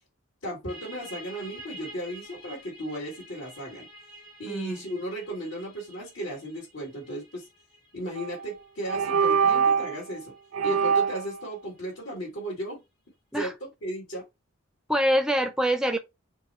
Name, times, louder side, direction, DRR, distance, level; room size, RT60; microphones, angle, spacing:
voice 1, 0.4-3.9 4.4-7.5 7.9-10.3 10.6-12.8 13.3-14.2, right 1 dB, 70° left, 2.0 m, -35 dB
sound 1, 0.7-12.0, right 1 dB, 25° left, 1.0 m, -50 dB
voice 2, 4.5-4.8 13.3-13.5 14.9-16.0, equal, 5° right, 0.4 m, -25 dB
sound 2, 8.2-8.4 8.9-10.0 10.5-11.3, right 6 dB, 85° right, 0.4 m, -23 dB
4.5 x 2.1 x 4.3 m
head